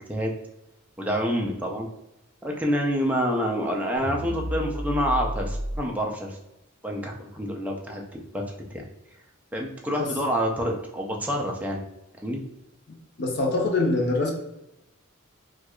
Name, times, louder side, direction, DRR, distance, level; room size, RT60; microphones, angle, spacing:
voice 1, 1.0-1.9 2.4-6.4 6.8-8.4 8.7-8.8 9.5-11.9 12.2-12.4, equal, 5° right, 0 dB, 0.5 m, -27 dB
sound 1, 4.0-5.8, equal, 70° right, 0.9 m, -31 dB
voice 2, 12.9-14.3, left 2 dB, 55° left, 0 dB, 0.7 m, -25 dB
4.4 x 2.4 x 2.3 m, 0.89 s
head